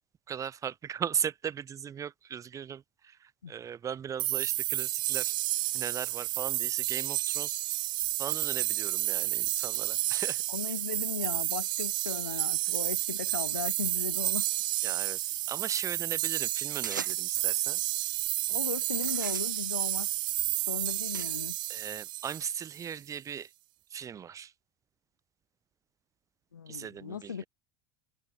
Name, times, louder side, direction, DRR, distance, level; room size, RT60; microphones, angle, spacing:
voice 1, 0.3-5.3 5.7-7.6 8.2-10.4 14.8-17.8 21.7-23.5 23.9-24.5 26.7-27.5, right 8 dB, 30° right, 1.7 m, -38 dB
sound 1, 4.2-22.9, right 16 dB, 50° right, 0.9 m, -31 dB
voice 2, 10.5-14.4 18.5-20.1 20.7-21.6 26.5-27.4, left 7 dB, 90° left, 0.8 m, -37 dB
sound 2, 16.8-17.4 18.2-18.5 19.0-21.3, right 7 dB, 90° right, 0.8 m, -41 dB
hypercardioid pair, 75°, 10 cm